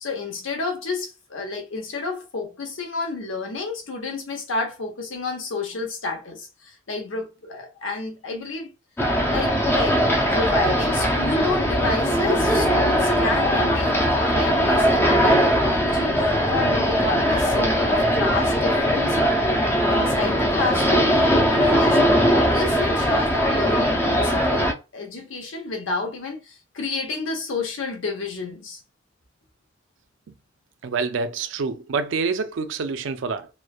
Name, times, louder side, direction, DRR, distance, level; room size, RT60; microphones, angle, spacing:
voice 1, 0.0-8.7 9.3-10.0 10.3-19.5 19.9-22.0 22.5-28.8, left 3 dB, 80° left, 0.8 m, -30 dB
sound 1, 9.0-24.7, equal, 10° left, 0.3 m, -20 dB
voice 2, 30.8-33.5, right 4 dB, 75° right, 0.4 m, -27 dB
3.0 x 2.1 x 2.3 m
head